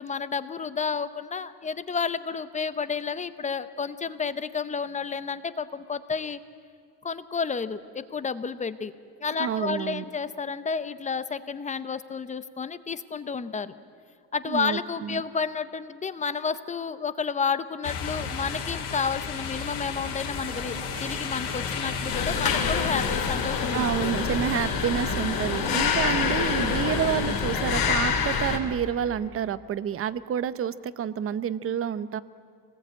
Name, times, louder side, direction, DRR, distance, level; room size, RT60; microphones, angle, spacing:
voice 1, 0.0-6.4 7.0-8.9 9.2-13.7 14.3-23.9 25.5-25.9, left 5 dB, 20° left, 13 dB, 0.7 m, -31 dB
voice 2, 9.4-10.0 14.5-15.2 23.7-32.2, right 9 dB, 35° right, 15 dB, 0.7 m, -29 dB
sound 1, 17.8-28.0, left 6 dB, 90° left, 3.8 m, -33 dB
sound 2, 20.4-27.3, right 4 dB, 85° right, 6.8 m, -43 dB
sound 3, 22.1-28.6, left 6 dB, 60° left, 3.4 m, -27 dB
26.0 x 19.5 x 8.9 m, 2.4 s
cardioid pair, 175°, 40 cm